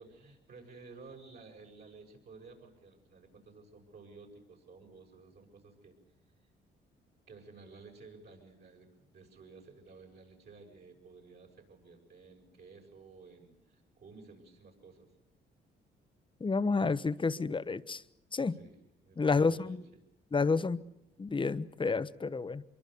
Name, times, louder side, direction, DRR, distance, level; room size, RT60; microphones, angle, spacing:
voice 1, 0.0-6.0 7.3-15.1 18.5-18.8 19.0-19.8, right 4 dB, 55° right, 7.2 m, -54 dB
voice 2, 16.4-18.0 18.3-18.6 19.2-19.8 20.3-20.8 21.2-22.6, left 4 dB, 25° left, 1.1 m, -30 dB
24.5 x 23.5 x 6.9 m
cardioid pair, 90°, 20 cm